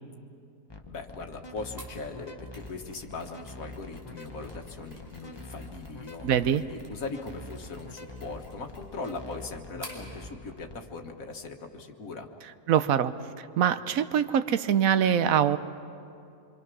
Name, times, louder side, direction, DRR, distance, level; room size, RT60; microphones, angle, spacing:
sound 1, 0.7-10.8, left 2 dB, 20° left, 1.1 m, -45 dB
voice 1, 0.9-12.3, left 3 dB, 70° left, 3 dB, 1.8 m, -40 dB
Mechanisms, 1.8-10.1, equal, 15° right, 4.5 m, -52 dB
voice 2, 6.2-6.6 12.7-15.6, right 9 dB, 75° right, 12 dB, 1.1 m, -24 dB
26.5 x 24.0 x 6.2 m, 2.6 s
omnidirectional pair, 1.5 m